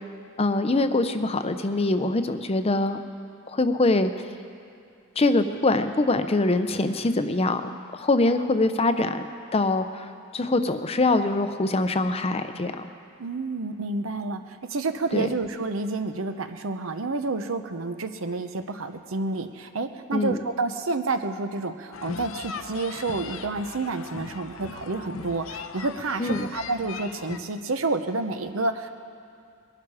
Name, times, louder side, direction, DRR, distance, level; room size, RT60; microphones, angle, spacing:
voice 1, 0.4-3.0 3.5-4.1 5.2-9.3 9.5-10.1 10.3-12.9 15.1-15.3 20.1-20.4 26.2-26.5, left 2 dB, 30° left, 9 dB, 0.6 m, -23 dB
voice 2, 13.2-28.9, right 3 dB, 75° right, 8 dB, 0.8 m, -29 dB
sound 1, 21.9-27.4, left 5 dB, 70° left, 0.7 m, -38 dB
21.5 x 12.0 x 4.9 m, 2.4 s
head